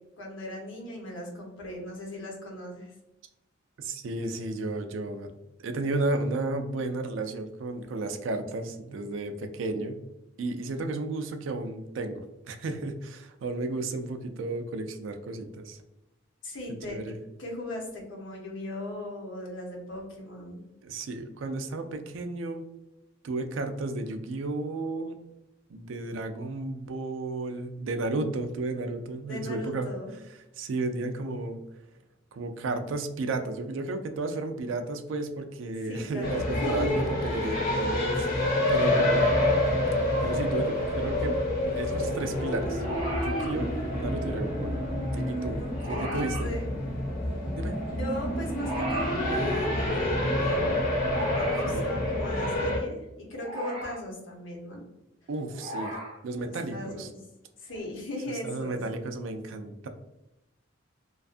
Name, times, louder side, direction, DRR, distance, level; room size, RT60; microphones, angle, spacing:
voice 1, 0.2-2.9 16.4-17.0 17.4-20.6 29.3-30.1 35.8-36.9 45.4-46.7 47.8-50.8 51.2-54.8 56.4-57.2 57.6-58.8, left 1 dB, 80° left, -1 dB, 0.8 m, -38 dB
voice 2, 3.8-5.3 5.6-10.0 10.4-15.8 16.9-17.2 20.8-22.6 23.2-25.2 25.7-29.9 30.6-31.6 32.3-39.3 40.2-41.4 41.7-42.8 43.2-44.7 45.1-46.5 47.6-47.7 51.4-51.9 55.3-55.9 56.2-57.1 58.3-59.9, right 2 dB, 80° right, 7 dB, 0.4 m, -33 dB
sound 1, 36.2-52.8, left 1 dB, 45° left, 0.8 m, -28 dB
sound 2, 42.8-43.5 45.7-46.5 48.5-49.2 51.0-51.7 53.4-54.0 55.5-56.2 57.7-57.8, right 1 dB, 25° right, 0.6 m, -36 dB
2.5 x 2.3 x 2.4 m, 0.93 s
head